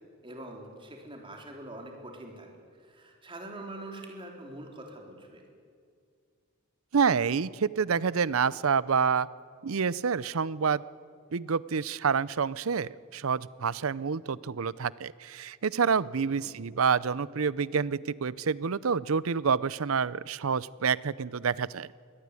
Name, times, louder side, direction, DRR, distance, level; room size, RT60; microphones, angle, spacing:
voice 1, 0.2-2.5 2.9-5.4 16.4-16.5, right 1 dB, 25° right, 2 dB, 3.8 m, -44 dB
voice 2, 6.9-9.3 9.6-10.8 11.3-21.9, right 6 dB, 85° right, 20 dB, 0.6 m, -28 dB
22.5 x 18.0 x 9.8 m, 2.1 s
head